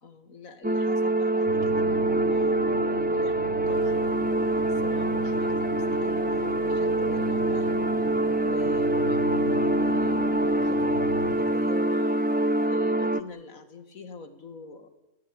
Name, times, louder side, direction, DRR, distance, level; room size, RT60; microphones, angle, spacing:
voice 1, 0.0-8.0 8.4-11.0 11.3-12.3 12.6-14.9, left 4 dB, 75° left, 9 dB, 2.4 m, -45 dB
sound 1, 0.6-13.2, right 1 dB, 10° right, 0.5 m, -25 dB
sound 2, 1.5-11.3, right 1 dB, 40° left, 3.6 m, -35 dB
Stream, 3.6-12.7, right 1 dB, 75° right, 6.2 m, -54 dB
30.0 x 17.5 x 8.8 m, 0.95 s
omnidirectional pair, 1.4 m